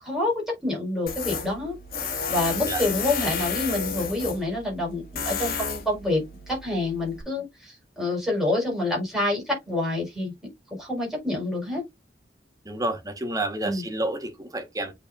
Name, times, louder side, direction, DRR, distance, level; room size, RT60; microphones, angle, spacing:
voice 1, 0.0-1.8 2.3-10.3 10.7-11.8 13.6-13.8, left 2 dB, ahead, 4.8 m, -27 dB
Tools, 1.1-7.2, left 6 dB, 55° left, 2.1 m, -32 dB
voice 2, 12.6-14.9, right 2 dB, 20° right, 1.4 m, -30 dB
8.3 x 4.7 x 2.5 m
head